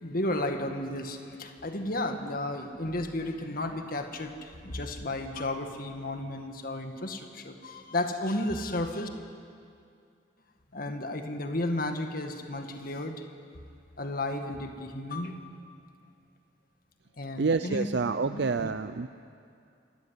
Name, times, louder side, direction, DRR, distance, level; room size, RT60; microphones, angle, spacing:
voice 1, 0.0-9.1 10.7-13.3 14.0-15.4 17.2-17.9 18.3-18.7, left 1 dB, 50° left, 5 dB, 1.8 m, -33 dB
voice 2, 17.4-19.1, right 4 dB, 60° right, 11 dB, 0.5 m, -28 dB
26.0 x 14.5 x 9.7 m, 2.4 s
head